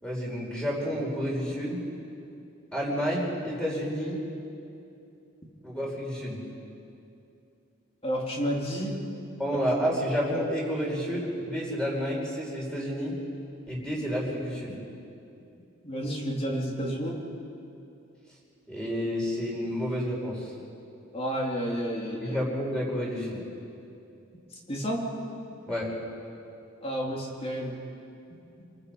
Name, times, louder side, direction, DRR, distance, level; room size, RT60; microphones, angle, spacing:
voice 1, 0.0-1.8 2.7-4.2 5.6-6.4 9.4-13.1 13.7-14.8 18.7-20.5 22.2-23.4 25.7-25.9, equal, 5° left, -4 dB, 5.1 m, -30 dB
voice 2, 8.0-9.0 15.8-17.2 21.1-22.5 24.7-25.1 26.8-27.7, equal, 30° left, -1 dB, 3.0 m, -30 dB
28.5 x 19.5 x 5.4 m, 2.7 s
head